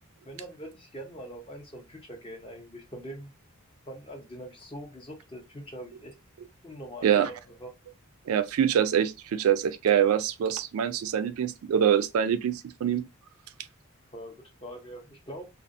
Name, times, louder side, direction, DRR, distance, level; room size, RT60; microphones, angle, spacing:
voice 1, 0.2-3.3 3.9-6.1 6.6-7.3 7.6-7.7 14.1-15.5, equal, 25° left, 0.7 m, -43 dB
voice 2, 8.3-13.1, right 9 dB, 70° right, 0.3 m, -25 dB
2.4 x 2.4 x 2.5 m
head